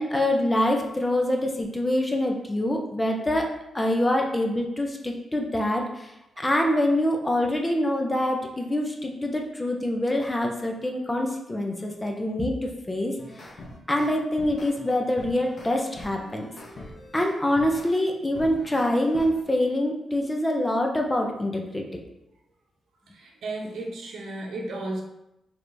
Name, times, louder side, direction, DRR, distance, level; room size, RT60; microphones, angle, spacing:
voice 1, 0.0-3.5 3.7-6.1 6.4-13.5 13.9-16.5 17.1-21.9, left 1 dB, 15° left, 2 dB, 0.5 m, -25 dB
sound 1, 13.0-17.9 18.3-19.4, left 1 dB, 50° left, 0.7 m, -43 dB
voice 2, 23.1-25.0, right 2 dB, 75° right, 0 dB, 0.8 m, -33 dB
4.7 x 3.3 x 2.6 m, 0.88 s
wide cardioid pair, 140°, 0 cm